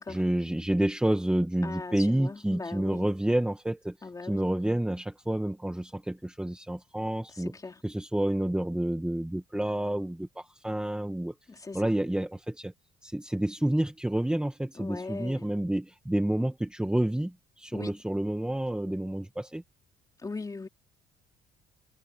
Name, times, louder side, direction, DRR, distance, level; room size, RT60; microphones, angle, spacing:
voice 1, 0.1-3.9 4.2-7.5 7.8-11.3 11.7-12.7 13.0-19.6, right 1 dB, 5° right, 1.9 m, -29 dB
voice 2, 1.6-3.1 4.0-4.5 7.3-7.8 11.5-12.0 14.7-15.5 17.7-17.9 20.2-20.7, left 3 dB, 20° left, 3.3 m, -39 dB
cardioid pair, 110°, 17 cm